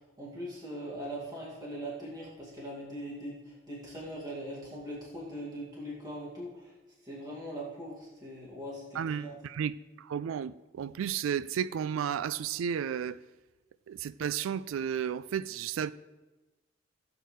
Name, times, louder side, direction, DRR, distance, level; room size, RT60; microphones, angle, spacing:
voice 1, 0.2-6.5 7.0-9.4, equal, 20° right, 2.2 m, -41 dB
voice 2, 8.9-13.2 13.9-15.9, right 8 dB, 85° right, 0.3 m, -33 dB
16.0 x 8.3 x 3.2 m
head